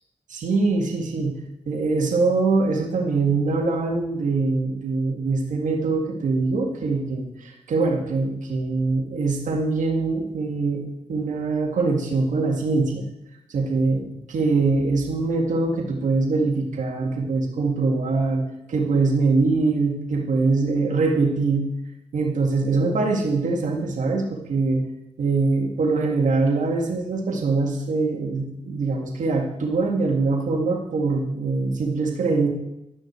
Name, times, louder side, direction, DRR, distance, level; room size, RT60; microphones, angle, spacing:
voice 1, 0.3-1.4 1.7-10.8 11.1-13.1 13.5-21.7 22.1-24.9 25.2-32.5, right 3 dB, 90° right, 1 dB, 2.0 m, -23 dB
12.0 x 6.3 x 8.1 m, 0.84 s
cardioid pair, 45°, 13 cm